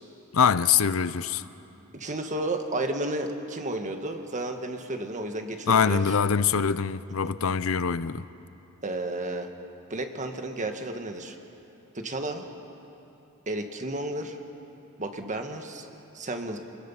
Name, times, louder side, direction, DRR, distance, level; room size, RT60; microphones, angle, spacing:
voice 1, 0.3-1.4 5.7-8.2, left 6 dB, 75° left, 0.6 m, -23 dB
voice 2, 1.9-6.0 8.8-9.5 9.9-11.4 11.9-12.4 13.5-14.4 15.0-15.9 16.1-16.6, right 2 dB, 35° right, 1.6 m, -32 dB
30.0 x 20.5 x 5.8 m
head